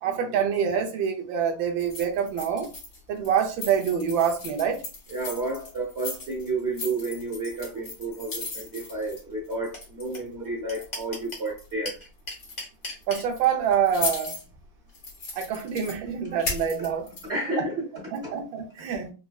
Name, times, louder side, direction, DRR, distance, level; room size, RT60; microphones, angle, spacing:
voice 1, 0.0-2.7 3.1-4.8 13.1-14.3 15.4-17.1 18.1-19.1, right 8 dB, 80° right, 1.5 m, -26 dB
sound 1, 1.8-3.0 3.2-10.3 10.7-11.9 12.3-12.5 13.0-14.4 14.9-15.9 16.4-17.3, left 3 dB, 70° left, 2.3 m, -37 dB
voice 2, 5.1-11.9 16.3-16.4 17.3-17.8 18.2-18.3, right 2 dB, 40° right, 1.0 m, -31 dB
sound 2, 9.7-9.8 10.1-10.2 10.4-11.5 11.8-13.2, left 1 dB, 25° left, 1.1 m, -35 dB
5.0 x 2.2 x 2.3 m
omnidirectional pair, 2.1 m